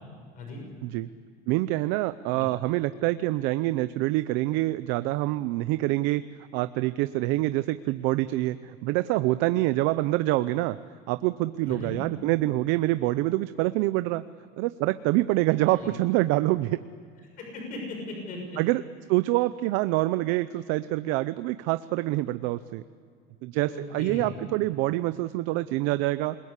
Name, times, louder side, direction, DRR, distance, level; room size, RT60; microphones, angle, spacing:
voice 1, 1.5-6.2 6.5-10.8 11.1-14.2 14.6-16.8 18.6-18.8 19.1-22.8 23.4-26.4, right 18 dB, 75° right, 13 dB, 0.7 m, -26 dB
voice 2, 11.6-12.0 15.7-15.9 17.4-18.6 23.7-24.3, left 2 dB, 40° left, 2 dB, 6.4 m, -37 dB
28.0 x 21.5 x 8.3 m, 2.1 s
cardioid pair, 165°, 20 cm